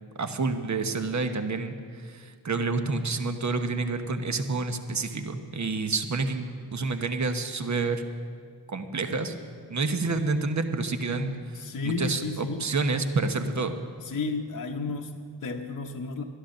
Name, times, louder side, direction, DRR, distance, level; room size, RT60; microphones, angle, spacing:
voice 1, 0.2-8.0 8.7-9.3 9.7-11.3 11.8-13.8, right 3 dB, 40° right, 7 dB, 1.1 m, -28 dB
voice 2, 11.2-12.7 14.0-16.2, left 3 dB, 45° left, 2 dB, 0.9 m, -33 dB
11.5 x 11.5 x 6.5 m, 2.1 s
cardioid pair, 50°, 43 cm